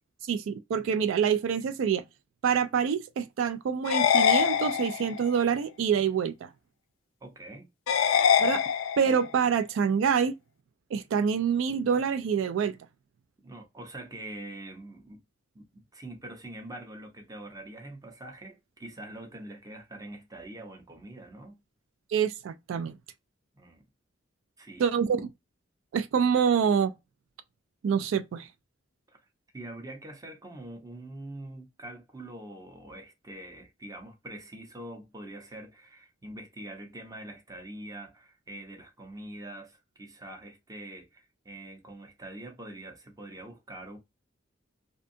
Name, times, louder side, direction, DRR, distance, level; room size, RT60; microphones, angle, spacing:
voice 1, 0.3-2.0 2.4-6.5 8.4-8.6 9.0-10.4 10.9-12.8 22.1-23.0 24.8-25.3 25.9-26.9 27.8-28.5, right 7 dB, 85° right, 0.3 m, -26 dB
sound 1, 3.8-5.3 7.9-9.3, left 8 dB, 90° left, 0.3 m, -24 dB
voice 2, 7.2-7.7 13.4-15.2 15.5-21.6 23.5-23.8 24.6-24.9 29.1-29.2 29.5-44.0, right 1 dB, 20° right, 0.7 m, -44 dB
2.6 x 2.2 x 2.5 m
head